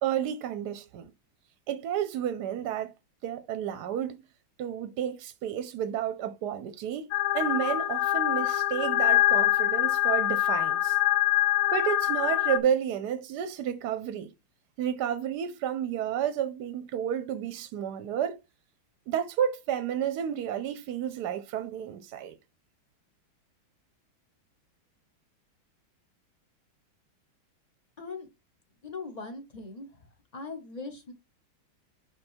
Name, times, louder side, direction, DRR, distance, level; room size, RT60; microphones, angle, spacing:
voice 1, 0.0-1.1 1.7-2.9 3.2-4.2 4.6-7.1 7.3-11.0 11.7-14.3 14.8-18.4 19.1-22.3, right 9 dB, 70° right, 1.0 m, -31 dB
sound 1, 7.1-12.6, left 14 dB, 75° left, 1.4 m, -25 dB
voice 2, 28.0-28.3 28.8-30.1 30.3-31.1, left 3 dB, 30° left, 0.8 m, -40 dB
5.5 x 5.3 x 4.4 m
omnidirectional pair, 2.2 m